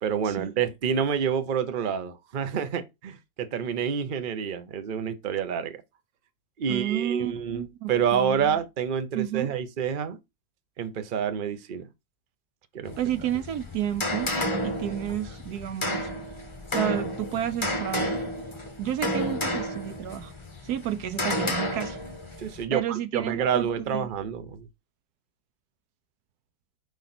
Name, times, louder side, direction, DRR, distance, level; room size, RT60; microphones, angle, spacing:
voice 1, 0.0-5.8 6.6-10.2 10.8-11.9 12.7-13.0 22.4-24.7, right 7 dB, 40° right, 0.8 m, -28 dB
voice 2, 6.7-8.6 9.1-9.5 13.0-14.3 14.6-16.1 16.7-18.2 18.8-20.3 20.6-22.0 22.7-24.1, right 11 dB, 80° right, 1.2 m, -31 dB
sound 1, 12.8-22.6, left 1 dB, 20° left, 1.4 m, -31 dB
5.2 x 3.9 x 5.9 m
omnidirectional pair, 1.7 m